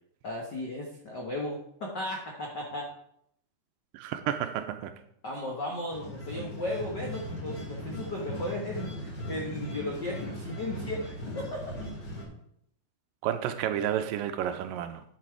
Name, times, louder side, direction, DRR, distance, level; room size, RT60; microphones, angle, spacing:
voice 1, 0.2-2.9 5.2-11.6, left 1 dB, 70° left, -1 dB, 1.0 m, -35 dB
voice 2, 3.9-4.9 13.2-15.0, right 10 dB, 80° right, 8 dB, 2.2 m, -31 dB
sound 1, 5.9-12.2, left 1 dB, 30° left, 2.6 m, -38 dB
11.0 x 6.0 x 4.7 m, 0.70 s
omnidirectional pair, 4.2 m